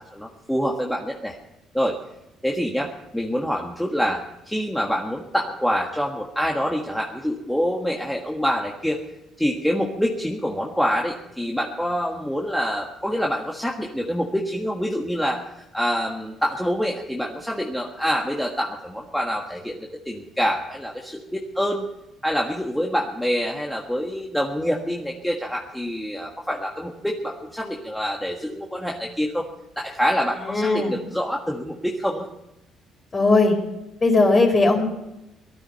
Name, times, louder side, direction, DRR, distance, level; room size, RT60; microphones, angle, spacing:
voice 1, 0.0-1.3 1.7-2.0 2.4-9.0 9.4-21.9 22.2-29.5 29.8-32.3, equal, ahead, -1 dB, 1.6 m, -26 dB
voice 2, 30.4-30.9 33.1-33.6 34.0-34.9, left 3 dB, 25° left, 2 dB, 4.5 m, -18 dB
18.5 x 13.0 x 5.8 m, 0.92 s
cardioid pair, 130°, 0 cm